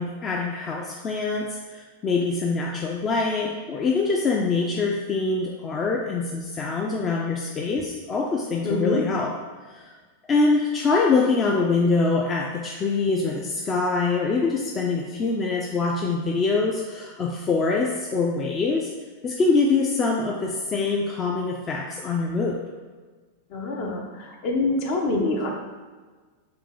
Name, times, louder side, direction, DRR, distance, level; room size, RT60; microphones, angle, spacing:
voice 1, 0.0-9.3 9.6-9.9 10.3-18.9 19.2-22.6, left 4 dB, 25° left, 0 dB, 0.4 m, -24 dB
voice 2, 8.6-9.1 23.5-25.5, left 2 dB, 50° left, 1 dB, 0.8 m, -25 dB
3.8 x 2.4 x 3.7 m, 1.4 s
hypercardioid pair, 110°, 0 cm